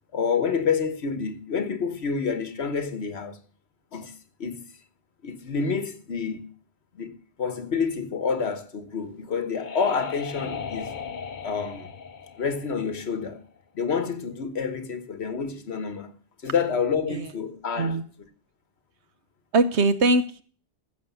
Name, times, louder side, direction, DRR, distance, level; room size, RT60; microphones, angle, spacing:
voice 1, 0.1-3.4 3.9-4.1 4.4-4.7 5.2-6.5 6.9-10.9 11.4-11.9 12.4-13.4 13.7-16.1 16.4-18.0, left 6 dB, 75° left, 1.5 m, -28 dB
sound 1, 9.0-13.6, left 6 dB, 50° left, 1.0 m, -38 dB
voice 2, 19.5-20.4, right 2 dB, 85° right, 1.2 m, -22 dB
15.0 x 6.3 x 7.0 m
omnidirectional pair, 1.1 m